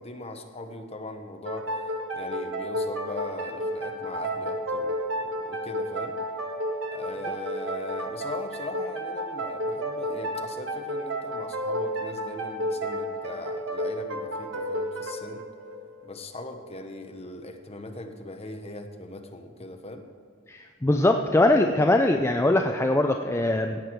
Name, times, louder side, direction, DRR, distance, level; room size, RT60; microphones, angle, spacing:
voice 1, 0.0-1.7 2.1-6.2 6.9-15.4 16.0-20.0, left 2 dB, 30° left, 5 dB, 1.1 m, -40 dB
sound 1, 1.4-16.8, equal, 75° right, 1.6 m, -32 dB
voice 2, 20.5-23.8, left 1 dB, 15° left, 4 dB, 0.5 m, -22 dB
17.0 x 8.1 x 4.6 m, 2.2 s
head